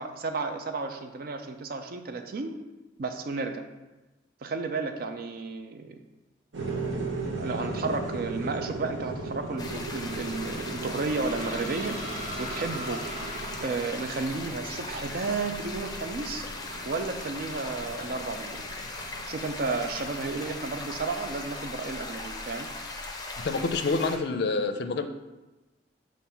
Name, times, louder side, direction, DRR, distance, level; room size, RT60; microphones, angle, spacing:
voice 1, 0.0-2.6 3.0-3.6 4.4-6.0 7.1-12.0 12.4-13.0 13.6-16.5 16.8-18.6 19.3-22.7, right 3 dB, 55° right, 6 dB, 0.4 m, -32 dB
sound 1, 6.5-21.1, right 3 dB, 85° right, 0.8 m, -38 dB
sound 2, 9.6-24.2, left 2 dB, 20° left, 0.6 m, -38 dB
sound 3, 10.2-14.5, equal, 15° right, 1.9 m, -41 dB
voice 2, 23.4-25.1, left 3 dB, 60° left, 8 dB, 0.4 m, -27 dB
6.9 x 2.5 x 5.4 m, 1.1 s
head